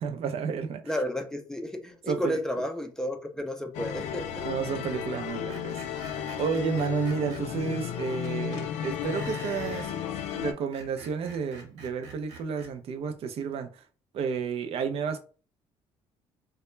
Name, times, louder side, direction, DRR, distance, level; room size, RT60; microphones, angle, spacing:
voice 1, 0.0-0.8 2.1-2.4 4.4-10.0 10.3-13.8 14.1-15.2, right 6 dB, 60° right, 0.4 m, -31 dB
voice 2, 0.8-4.5, equal, 5° left, 0.4 m, -32 dB
sound 1, 3.7-10.5, left 9 dB, 85° left, 0.4 m, -34 dB
Screech, 5.5-7.4 9.0-9.9 10.6-12.7, right 3 dB, 80° right, 1.0 m, -46 dB
2.1 x 2.1 x 3.0 m
cardioid pair, 100°, 11 cm